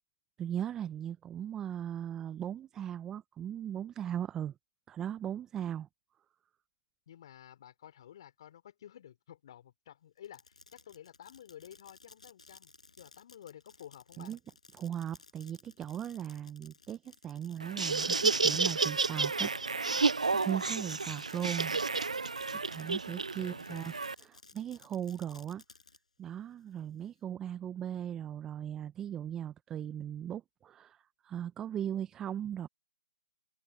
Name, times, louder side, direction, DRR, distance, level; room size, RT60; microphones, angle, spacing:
voice 1, 0.4-4.5 4.9-5.9 14.2-14.4 14.7-19.5 20.4-21.8 22.7-23.9 24.3-25.6 26.2-32.7, right 10 dB, 15° right, 0.8 m, -38 dB
voice 2, 7.1-14.3 23.3-23.9, left 10 dB, 45° left, 4.6 m, -52 dB
Fireworks, 10.2-23.1 23.5-26.0, left 3 dB, 75° left, 5.7 m, -58 dB
Laughter, 17.6-24.1, right 4 dB, 80° right, 0.4 m, -31 dB
figure-of-eight pair, 140°, 4 cm